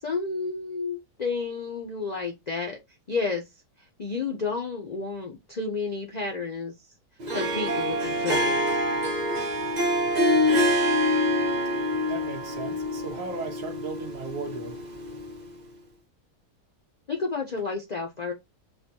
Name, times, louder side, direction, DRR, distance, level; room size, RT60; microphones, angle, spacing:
voice 1, 0.0-2.8 3.1-3.4 3.8-6.9 7.3-8.6 17.1-18.3, left 4 dB, 70° left, 0.4 m, -31 dB
Harp, 7.2-15.5, left 1 dB, 35° right, 0.7 m, -26 dB
voice 2, 12.1-14.9, right 4 dB, 60° right, 1.2 m, -36 dB
6.6 x 2.2 x 2.8 m
omnidirectional pair, 1.7 m